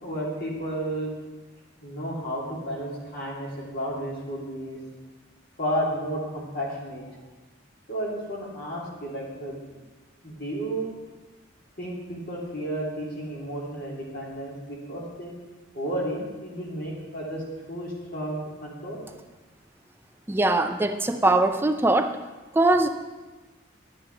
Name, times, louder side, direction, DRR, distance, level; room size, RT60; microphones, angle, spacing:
voice 1, 0.0-1.1 1.8-4.8 5.6-7.0 7.9-9.8 10.2-10.9 11.8-15.3 15.7-19.0, right 1 dB, 50° left, -6 dB, 2.8 m, -32 dB
voice 2, 20.3-22.2 22.5-22.9, right 2 dB, 10° right, 8 dB, 0.4 m, -21 dB
10.5 x 10.0 x 3.3 m, 1.2 s
head